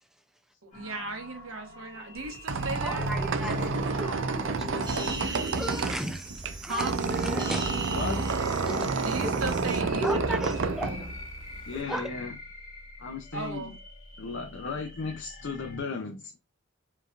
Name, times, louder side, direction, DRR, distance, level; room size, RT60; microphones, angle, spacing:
voice 1, 0.6-3.1 6.7-7.0 9.0-11.1 13.3-13.7, right 2 dB, 85° right, 1.3 m, -36 dB
sound 1, 0.7-15.8, left 1 dB, 35° left, 1.8 m, -45 dB
Squeak, 2.2-11.8, right 4 dB, 65° right, 0.5 m, -30 dB
voice 2, 2.8-4.8 5.5-6.2 6.6-8.1 8.6-8.9 9.2-9.3 10.0-11.0 11.9-12.1, right 1 dB, ahead, 0.4 m, -35 dB
voice 3, 4.6-5.2 7.9-8.2 11.7-12.4 13.0-13.8 14.2-16.3, left 4 dB, 60° left, 0.6 m, -36 dB
sound 2, 4.8-9.8, right 3 dB, 20° right, 1.0 m, -39 dB
5.1 x 3.3 x 2.5 m
head